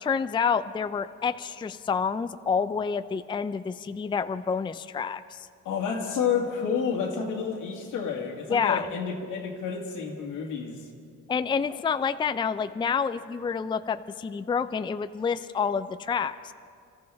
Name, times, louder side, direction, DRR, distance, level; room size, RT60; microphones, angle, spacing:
voice 1, 0.0-5.5 8.5-8.9 11.3-16.5, left 6 dB, 15° left, 11 dB, 0.4 m, -28 dB
voice 2, 5.7-10.9, left 6 dB, 85° left, 0 dB, 2.1 m, -30 dB
27.0 x 13.5 x 3.5 m, 2.3 s
cardioid pair, 90°, 30 cm